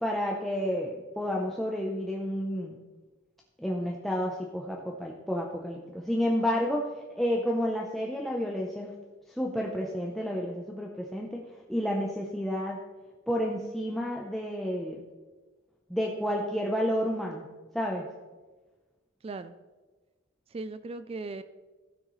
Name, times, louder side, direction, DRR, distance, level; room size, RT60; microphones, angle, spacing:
voice 1, 0.0-2.8 3.6-6.9 7.2-8.9 9.3-11.4 11.7-12.8 13.3-15.0 15.9-17.5 17.7-18.1, equal, ahead, -2 dB, 0.7 m, -30 dB
voice 2, 19.2-19.5 20.5-21.4, right 3 dB, 30° right, 12 dB, 0.3 m, -37 dB
15.0 x 6.4 x 3.1 m, 1.3 s
head